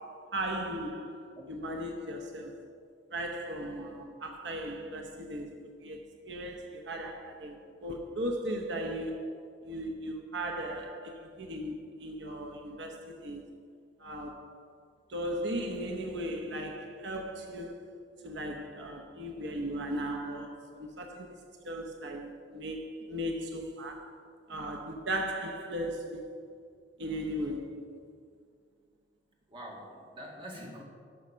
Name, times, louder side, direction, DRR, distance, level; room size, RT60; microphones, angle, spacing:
voice 1, 0.0-2.6 3.1-6.0 6.2-13.4 14.0-14.6 15.1-17.9 18.2-24.2 24.5-26.3 27.0-27.9, right 1 dB, 75° right, 0.9 m, -37 dB
voice 2, 29.5-30.8, equal, 25° right, 1.9 m, -45 dB
12.0 x 6.4 x 5.6 m
head